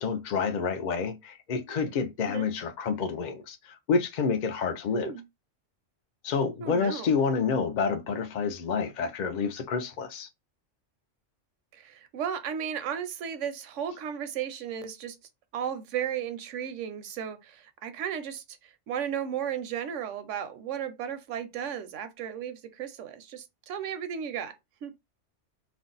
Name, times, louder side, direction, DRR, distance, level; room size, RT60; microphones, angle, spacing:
voice 1, 0.0-5.1 6.2-10.3, left 5 dB, 65° left, 0.4 m, -28 dB
voice 2, 4.9-5.2 6.6-7.1 11.7-15.2 15.5-24.5 24.8-24.9, right 8 dB, 80° right, 0.9 m, -35 dB
2.5 x 2.1 x 3.8 m
omnidirectional pair, 1.3 m